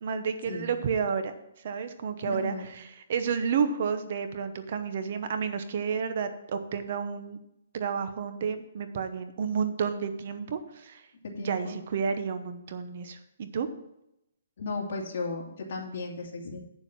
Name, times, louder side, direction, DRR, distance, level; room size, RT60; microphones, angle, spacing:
voice 1, 0.0-1.3 1.6-7.4 7.7-11.0 11.4-13.7, right 6 dB, 45° right, 9 dB, 0.9 m, -31 dB
voice 2, 2.2-2.7 11.4-11.7 14.6-16.6, left 3 dB, 50° left, -1 dB, 2.7 m, -35 dB
8.9 x 7.2 x 6.0 m, 0.83 s
hypercardioid pair, 170°, 0 cm